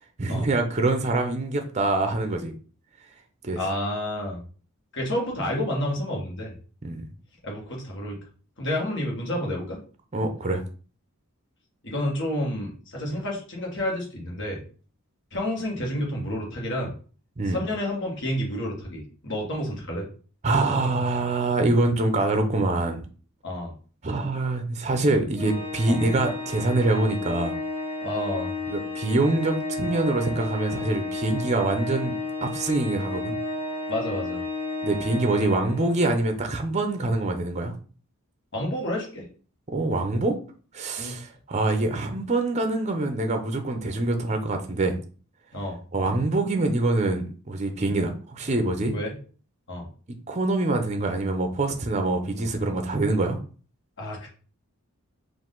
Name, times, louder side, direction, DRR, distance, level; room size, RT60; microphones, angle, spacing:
voice 1, 0.2-2.5 3.4-3.6 6.8-7.1 10.1-10.6 17.4-17.6 20.4-23.0 24.0-27.5 28.7-32.2 32.4-33.4 34.8-37.7 39.7-40.4 40.7-45.0 45.9-48.9 50.3-53.4, right 2 dB, 30° right, 5 dB, 0.6 m, -25 dB
voice 2, 3.5-4.4 4.9-6.5 7.4-8.2 8.6-9.8 11.8-14.6 15.3-16.9 17.5-20.0 23.4-23.7 25.9-26.0 28.0-28.5 33.9-34.4 38.5-39.2 41.0-41.1 45.5-45.8 48.9-49.1 49.7-49.9 54.0-54.3, left 1 dB, 55° left, -1 dB, 1.6 m, -29 dB
Organ, 25.4-36.1, left 2 dB, 30° left, 2.2 m, -32 dB
4.6 x 2.6 x 3.8 m, 0.39 s
head